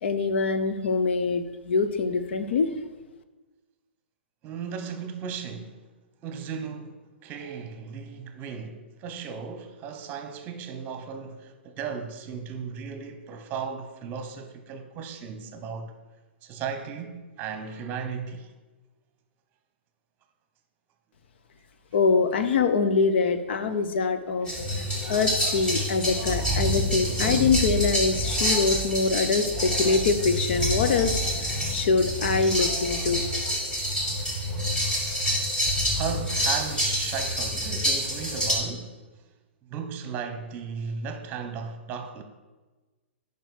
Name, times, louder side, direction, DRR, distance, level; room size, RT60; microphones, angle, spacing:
voice 1, 0.0-2.7 21.9-24.5 24.8-33.6, left 4 dB, 65° left, 0.9 m, -24 dB
voice 2, 4.4-5.8 6.2-15.9 16.4-18.5 26.3-26.8 35.9-39.0 39.6-42.2, right 6 dB, 30° right, 1.2 m, -36 dB
sound 1, 24.5-38.5, equal, 15° left, 2.4 m, -27 dB
9.0 x 5.4 x 6.5 m
hypercardioid pair, 125°, 6 cm